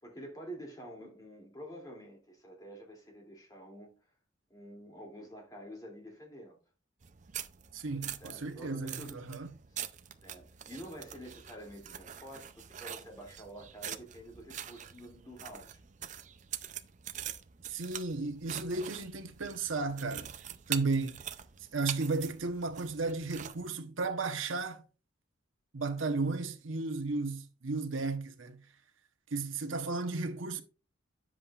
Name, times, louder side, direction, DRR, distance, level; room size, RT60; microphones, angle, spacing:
voice 1, 0.0-3.9 4.5-6.6 8.2-9.2 10.2-15.8, right 1 dB, 20° left, 2.7 m, -48 dB
sound 1, 7.0-23.7, right 10 dB, 40° right, 0.5 m, -44 dB
voice 2, 7.7-9.5 17.7-20.3 20.7-21.2 21.7-24.8 25.7-28.6 29.3-30.6, right 3 dB, 90° right, 1.0 m, -34 dB
10.0 x 7.5 x 2.4 m
head